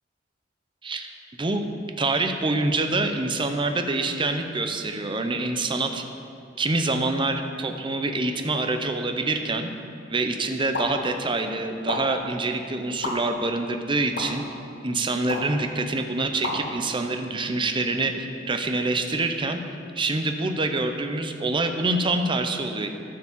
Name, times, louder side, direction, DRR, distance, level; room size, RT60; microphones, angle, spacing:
voice 1, 2.0-6.0 6.6-9.7 10.1-14.4 14.8-18.1 18.5-19.6 20.0-22.9, right 2 dB, 25° right, 6 dB, 0.6 m, -26 dB
sound 1, 10.7-10.9 11.9-12.0 13.0-13.1 14.1-14.2 15.3-15.5 16.4-16.6, left 2 dB, 65° left, 1.8 m, -29 dB
12.0 x 4.7 x 7.3 m, 2.6 s
head